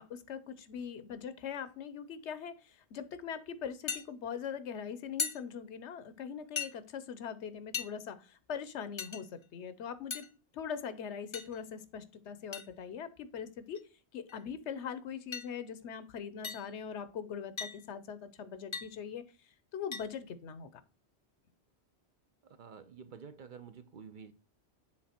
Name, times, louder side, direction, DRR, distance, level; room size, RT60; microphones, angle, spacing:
voice 1, 0.0-10.2 10.5-13.8 14.1-19.2 19.7-20.8, left 7 dB, 85° left, 14 dB, 1.0 m, -41 dB
sound 1, 3.9-4.0 5.2-5.4 6.6-6.7 7.7-7.9 9.0-9.2 10.1-10.3 11.3-11.6 12.5-12.7 13.7-13.8 14.3-14.4 15.3-15.5 16.4-16.7 17.6-17.8 18.7-18.9 19.9-20.1, left 6 dB, 35° left, 0.5 m, -37 dB
voice 2, 22.6-24.3, right 6 dB, 55° right, 10 dB, 0.7 m, -49 dB
7.4 x 3.6 x 4.3 m, 0.35 s
omnidirectional pair, 1.1 m